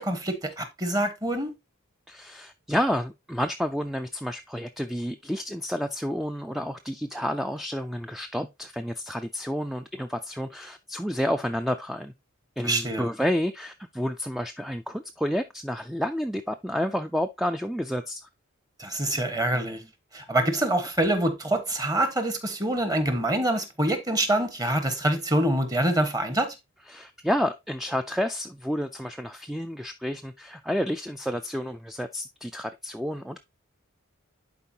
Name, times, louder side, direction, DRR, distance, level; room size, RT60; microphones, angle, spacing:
voice 1, 0.0-1.5 12.6-13.1 18.8-19.8 20.1-26.5, right 1 dB, 20° right, 1.3 m, -25 dB
voice 2, 2.1-12.1 12.6-18.3 19.1-19.2 26.9-33.4, equal, ahead, 0.4 m, -30 dB
10.5 x 4.6 x 2.8 m
head